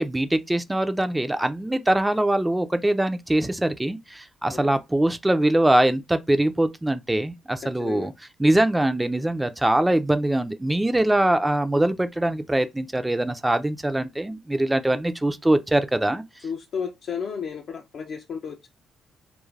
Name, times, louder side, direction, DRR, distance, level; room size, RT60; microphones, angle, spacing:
voice 1, 0.0-8.1 8.4-16.2, right 1 dB, 10° right, 0.3 m, -22 dB
voice 2, 7.7-8.1 16.4-18.7, left 6 dB, 60° left, 0.4 m, -33 dB
2.3 x 2.0 x 3.2 m
cardioid pair, 90°, 0 cm